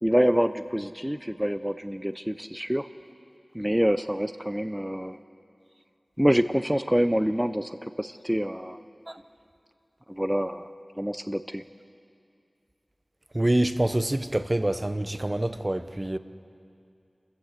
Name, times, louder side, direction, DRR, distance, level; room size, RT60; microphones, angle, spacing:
voice 1, 0.0-2.9 3.5-5.2 6.2-8.8 10.1-10.7 11.0-11.6, equal, 5° right, 0.5 m, -26 dB
voice 2, 13.3-16.2, right 1 dB, 30° right, 0.8 m, -26 dB
28.0 x 14.5 x 8.2 m
wide cardioid pair, 60°, 0 cm